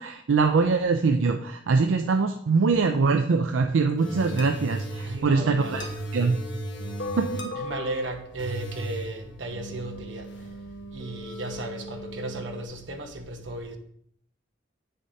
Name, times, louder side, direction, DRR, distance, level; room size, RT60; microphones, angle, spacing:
voice 1, 0.0-5.9 6.1-6.4 7.2-7.3, right 4 dB, 90° right, 0.4 m, -23 dB
sound 1, 4.0-12.6, right 1 dB, 65° left, 1.3 m, -36 dB
voice 2, 5.0-5.9 7.5-10.5 10.9-13.8, right 2 dB, 70° right, 1.0 m, -35 dB
8.8 x 6.6 x 2.7 m
head